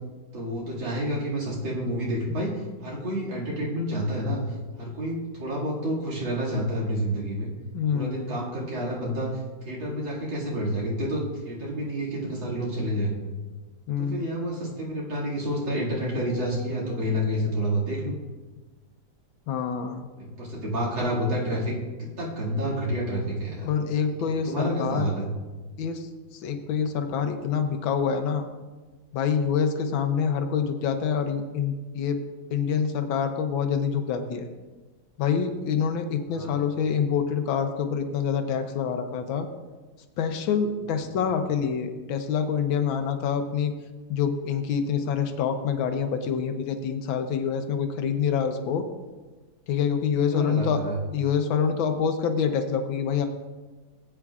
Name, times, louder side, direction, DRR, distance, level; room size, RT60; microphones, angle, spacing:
voice 1, 0.3-4.4 4.8-7.5 7.9-13.1 14.0-18.1 20.2-23.7 24.2-25.3 36.3-36.6 50.3-51.0, equal, 85° right, -5 dB, 3.0 m, -29 dB
voice 2, 7.7-8.3 13.9-14.3 19.5-20.1 23.6-25.1 25.8-28.4 29.1-32.2 32.5-34.5 35.2-39.5 40.2-43.7 44.1-48.9 49.7-50.8 51.1-53.3, left 7 dB, 85° left, 7 dB, 1.6 m, -26 dB
17.5 x 8.8 x 2.4 m, 1.3 s
omnidirectional pair, 2.1 m